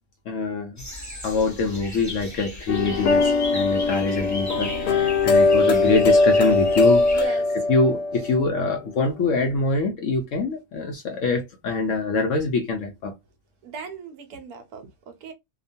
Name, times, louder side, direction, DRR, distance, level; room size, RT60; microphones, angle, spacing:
voice 1, 0.3-0.8 1.2-7.2 7.7-13.1, left 3 dB, 65° left, 0.8 m, -24 dB
sound 1, 0.8-7.3, left 2 dB, 15° left, 0.6 m, -36 dB
sound 2, 2.7-8.6, left 3 dB, 90° left, 1.2 m, -20 dB
voice 2, 7.1-7.6 13.6-15.3, right 4 dB, 75° right, 1.1 m, -37 dB
2.9 x 2.2 x 2.5 m
omnidirectional pair, 1.7 m